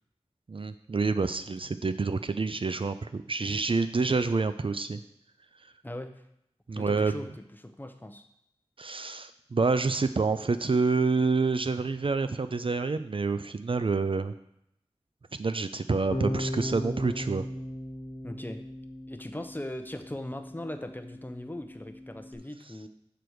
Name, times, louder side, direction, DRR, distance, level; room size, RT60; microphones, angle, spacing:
voice 1, 0.5-5.0 6.7-7.2 8.8-14.3 15.4-17.4, right 4 dB, 55° right, 10 dB, 0.4 m, -27 dB
voice 2, 5.8-6.2 6.8-8.2 18.2-18.6 19.1-22.9, left 1 dB, 15° left, 7 dB, 0.7 m, -39 dB
Bass guitar, 16.1-22.4, equal, 80° left, 1.4 m, -37 dB
6.9 x 4.5 x 6.3 m, 0.78 s
wide cardioid pair, 60°, 11 cm